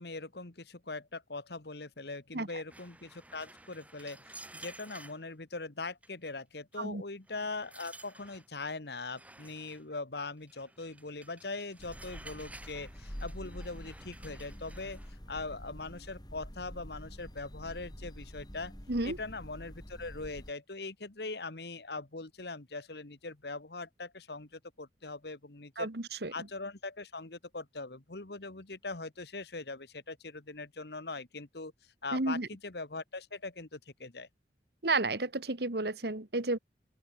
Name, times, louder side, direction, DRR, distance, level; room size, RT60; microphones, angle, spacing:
voice 1, 0.0-15.0 15.3-18.7 19.0-25.9 26.3-31.7 32.0-34.3, left 3 dB, 60° left, 1.6 m, -41 dB
sound 1, 2.7-5.2 6.0-6.3 6.7-6.8 7.3-8.5 9.1-9.8 10.5-15.1, right 2 dB, 10° right, 6.0 m, -53 dB
sound 2, 11.8-20.5, equal, 20° left, 4.1 m, -47 dB
voice 2, 25.8-26.3 32.1-32.5 34.8-36.6, right 2 dB, 60° right, 1.9 m, -32 dB
open air
head